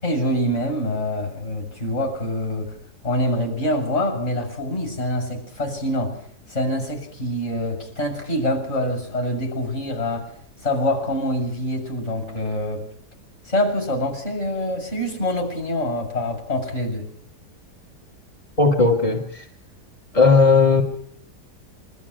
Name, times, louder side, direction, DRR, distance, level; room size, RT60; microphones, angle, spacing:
voice 1, 0.0-2.7 3.0-6.2 6.5-10.3 10.6-12.8 13.5-17.1, left 1 dB, 40° left, 3 dB, 7.4 m, -25 dB
voice 2, 18.6-19.2 20.1-20.8, left 4 dB, 20° left, 2 dB, 2.0 m, -15 dB
24.5 x 14.0 x 9.9 m, 0.64 s
omnidirectional pair, 1.8 m